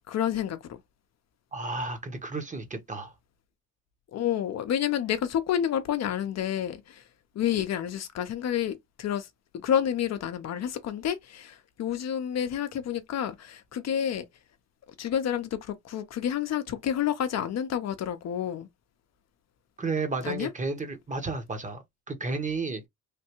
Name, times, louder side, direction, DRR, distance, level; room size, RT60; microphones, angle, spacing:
voice 1, 0.1-0.8 4.1-7.0 7.3-9.3 9.5-14.3 15.0-18.7 20.2-20.5, left 9 dB, 60° left, 0.6 m, -29 dB
voice 2, 1.5-3.1 19.8-22.9, right 3 dB, 25° right, 0.9 m, -32 dB
3.2 x 2.2 x 2.9 m
cardioid pair, 90°, 30 cm